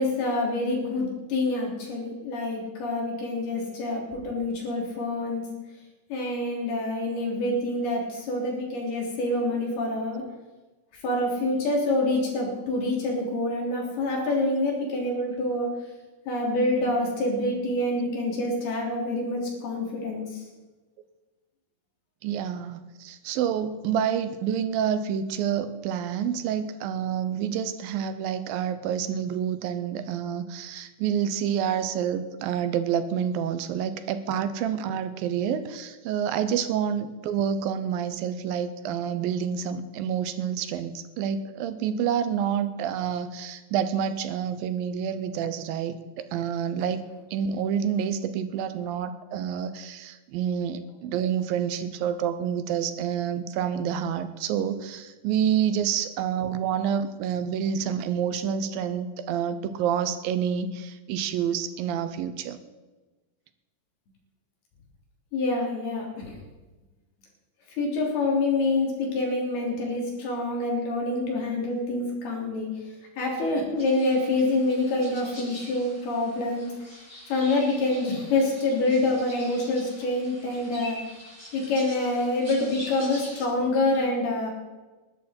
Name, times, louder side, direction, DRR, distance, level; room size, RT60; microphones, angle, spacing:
voice 1, 0.0-5.4 6.1-10.2 10.9-15.7 16.3-20.4 65.3-66.4 67.7-72.7 73.2-76.7 77.3-81.0 81.5-84.5, left 2 dB, 85° left, -1 dB, 5.3 m, -26 dB
voice 2, 22.2-62.6, right 8 dB, 80° right, 11 dB, 2.5 m, -28 dB
sound 1, 73.8-83.4, left 1 dB, 5° left, 5.7 m, -45 dB
20.5 x 11.0 x 4.4 m, 1.2 s
omnidirectional pair, 4.3 m